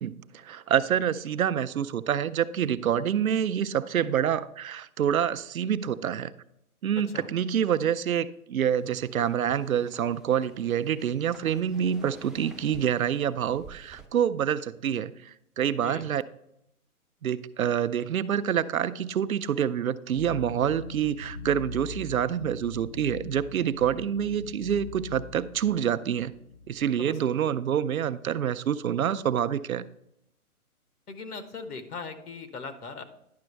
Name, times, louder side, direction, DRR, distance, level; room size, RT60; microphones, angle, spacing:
voice 1, 0.0-6.3 6.8-16.2 17.2-26.3 26.7-29.8, right 9 dB, 70° right, 13 dB, 0.6 m, -27 dB
sound 1, 8.8-14.1, right 2 dB, ahead, 0.3 m, -51 dB
sound 2, 20.1-26.9, left 3 dB, 40° left, 0.6 m, -42 dB
voice 2, 31.1-33.0, left 4 dB, 85° left, 8 dB, 1.4 m, -39 dB
10.5 x 6.1 x 3.2 m, 0.78 s
hypercardioid pair, 175°, 44 cm